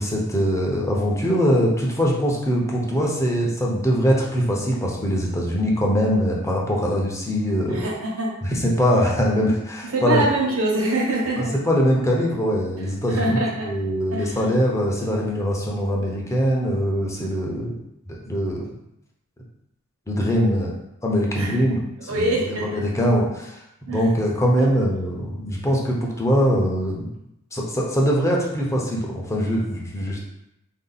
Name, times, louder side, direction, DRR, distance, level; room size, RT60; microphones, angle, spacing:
voice 1, 0.0-7.8 8.4-10.2 11.4-17.8 18.1-18.7 20.1-20.7 21.0-27.1 27.5-30.2, equal, 15° left, -2 dB, 0.7 m, -22 dB
voice 2, 7.7-8.3 9.9-11.5 13.1-13.7 14.1-14.4 21.3-21.6 22.1-22.7 23.9-24.1 24.6-24.7, right 2 dB, 65° right, -2 dB, 1.1 m, -24 dB
4.2 x 2.8 x 4.0 m, 0.83 s
head